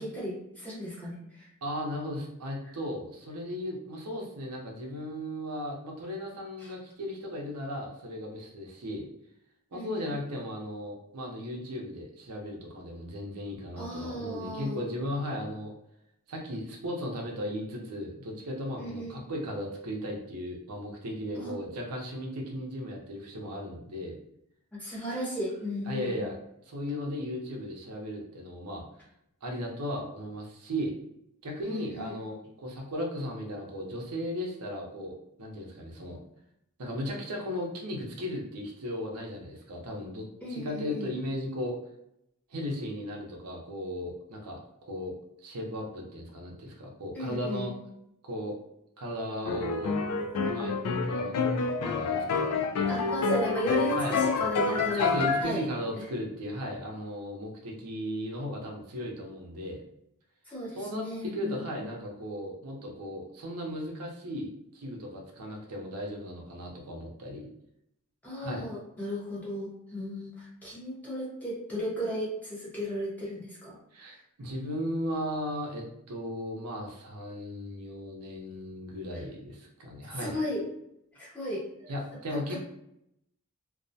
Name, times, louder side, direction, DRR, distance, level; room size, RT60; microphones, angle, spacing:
voice 1, 0.0-1.5 6.6-6.7 9.7-10.2 13.8-14.8 18.7-19.2 21.3-21.5 24.7-26.2 31.6-32.2 40.4-41.1 47.1-47.7 52.9-55.6 56.0-56.1 60.5-61.6 68.2-73.8 80.1-80.6 81.1-81.9 82.3-82.6, equal, 5° left, -6 dB, 0.7 m, -35 dB
voice 2, 1.6-9.1 9.7-15.7 16.3-24.2 25.9-26.4 26.7-28.9 29.4-31.0 31.4-35.1 35.4-36.2 36.8-40.2 40.5-41.8 42.5-45.1 45.4-47.7 48.2-48.5 49.0-50.0 50.5-50.8 51.0-51.3 51.8-53.0 54.0-54.2 54.9-59.8 60.8-67.5 68.4-68.7 73.9-80.4 81.9-82.6, equal, 80° right, 0 dB, 0.6 m, -36 dB
sound 1, 49.5-55.4, left 4 dB, 80° left, 0.3 m, -28 dB
2.3 x 2.1 x 2.6 m, 0.78 s
head